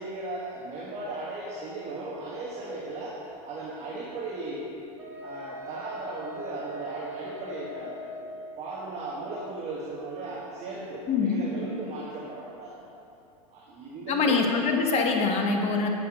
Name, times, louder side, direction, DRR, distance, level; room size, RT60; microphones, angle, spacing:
voice 1, 0.0-3.2 3.4-4.7 5.2-8.1 8.6-12.7 13.5-14.5, right 2 dB, 35° right, -5 dB, 1.2 m, -36 dB
Wind instrument woodwind instrument, 5.0-8.6, equal, 10° right, 1.6 m, -41 dB
voice 2, 11.1-11.4 14.1-15.9, left 4 dB, 35° left, 2 dB, 1.1 m, -24 dB
7.6 x 6.6 x 5.0 m, 2.8 s
hypercardioid pair, 120°, 20 cm